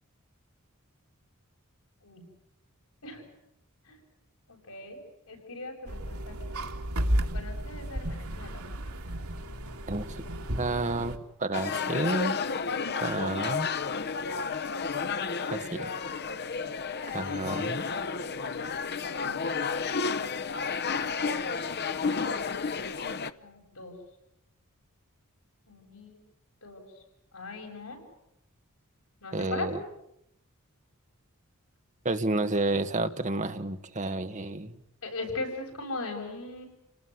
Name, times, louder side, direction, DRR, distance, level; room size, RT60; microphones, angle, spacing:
voice 1, 4.5-5.0 5.3-6.6 7.3-8.8 19.0-19.4 23.4-23.9 25.7-26.2 26.6-26.8 27.3-28.0 29.2-29.7 35.0-36.7, left 3 dB, 80° left, 3 dB, 8.0 m, -40 dB
sound 1, 5.9-11.2, right 1 dB, 85° right, 2.4 m, -33 dB
voice 2, 10.6-12.4 13.0-13.7 15.5-15.9 17.1-17.8 29.3-29.8 32.1-34.7, right 2 dB, 35° right, 8 dB, 1.6 m, -30 dB
sound 2, 11.5-23.3, left 5 dB, 50° left, 0.9 m, -31 dB
29.5 x 19.0 x 9.6 m, 0.82 s
head